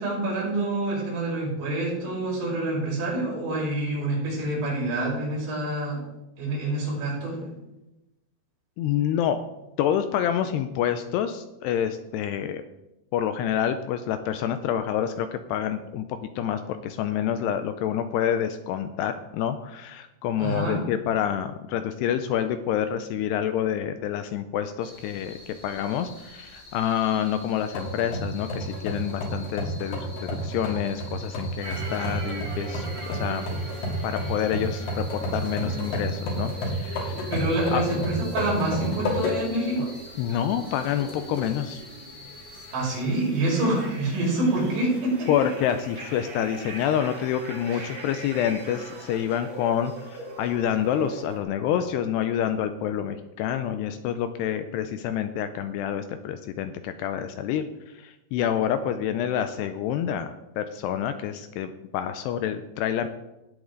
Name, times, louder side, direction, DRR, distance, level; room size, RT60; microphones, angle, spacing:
voice 1, 0.0-6.0 6.4-7.5 20.4-20.8 37.3-39.9 42.7-45.3 47.7-47.9, right 2 dB, 75° right, -4 dB, 7.5 m, -27 dB
voice 2, 8.8-9.4 9.8-12.6 13.1-33.5 34.0-37.3 37.7-37.9 39.8-39.9 40.2-41.8 45.3-63.1, left 9 dB, 80° left, 9 dB, 2.5 m, -28 dB
sound 1, 24.8-42.9, left 2 dB, 40° left, 0.9 m, -46 dB
sound 2, 27.7-39.7 40.1-40.2 41.0-41.6, equal, 55° left, 4.1 m, -31 dB
sound 3, 31.6-51.4, right 3 dB, 40° right, 3.2 m, -42 dB
18.0 x 8.3 x 3.9 m, 0.94 s
omnidirectional pair, 5.2 m